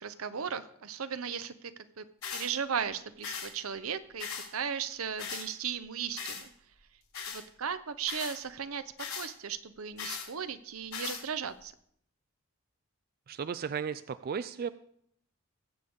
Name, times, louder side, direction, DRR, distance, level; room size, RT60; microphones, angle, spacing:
voice 1, 0.0-2.1 2.3-6.5 7.3-8.8 9.2-11.7, right 7 dB, 85° right, 13 dB, 0.7 m, -36 dB
sound 1, 2.2-2.5 3.2-3.5 4.2-4.5 5.2-5.5 6.2-6.4 7.1-7.4 8.1-8.4 9.0-9.3 10.0-10.3 10.9-11.2, left 6 dB, 80° left, 5.2 m, -38 dB
voice 2, 13.3-14.7, right 6 dB, 45° right, 13 dB, 0.4 m, -35 dB
20.0 x 7.9 x 3.6 m, 0.68 s
head